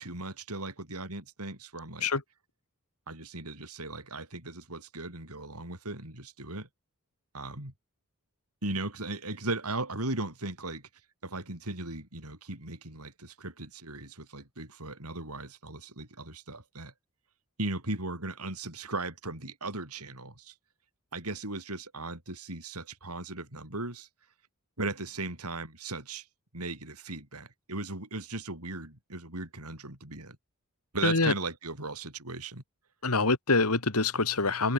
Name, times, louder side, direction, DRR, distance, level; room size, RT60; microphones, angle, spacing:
voice 1, 0.0-2.1 3.1-6.7 7.3-7.7 8.6-10.8 11.2-16.9 17.6-20.5 21.1-24.1 24.8-26.3 26.5-30.4 30.9-32.6, right 2 dB, 90° right, 7.2 m, -37 dB
voice 2, 31.0-31.3 33.0-34.7, left 3 dB, 85° left, 2.7 m, -25 dB
open air
head